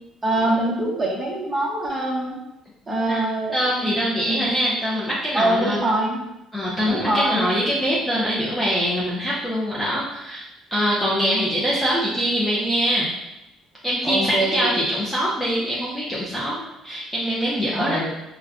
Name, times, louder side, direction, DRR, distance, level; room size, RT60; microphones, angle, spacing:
voice 1, 0.2-2.4 2.9-3.9 4.2-4.5 5.3-6.2 6.9-7.5 14.0-14.7 17.8-18.1, right 1 dB, 15° right, -5 dB, 0.9 m, -24 dB
voice 2, 3.5-5.8 6.5-10.5 10.7-13.1 13.8-18.0, equal, 10° left, -7 dB, 0.5 m, -23 dB
4.6 x 2.1 x 2.4 m, 0.92 s
cardioid pair, 135°, 0 cm